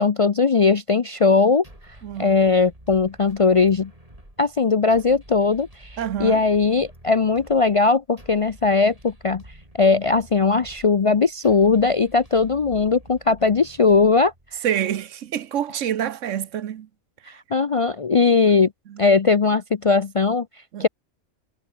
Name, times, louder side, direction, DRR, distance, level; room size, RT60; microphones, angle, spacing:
voice 1, 0.0-1.6 2.2-3.9 4.4-9.4 9.8-14.3 17.5-18.7 19.0-20.5 20.8-20.9, left 4 dB, 45° left, 0.4 m, -19 dB
sound 1, 1.6-14.7, right 1 dB, 30° right, 7.8 m, -48 dB
voice 2, 2.0-2.3 6.0-6.4 14.6-16.9 17.2-17.4 18.1-18.3 18.9-19.0 20.7-20.9, right 10 dB, 80° right, 1.2 m, -27 dB
omnidirectional pair, 1.3 m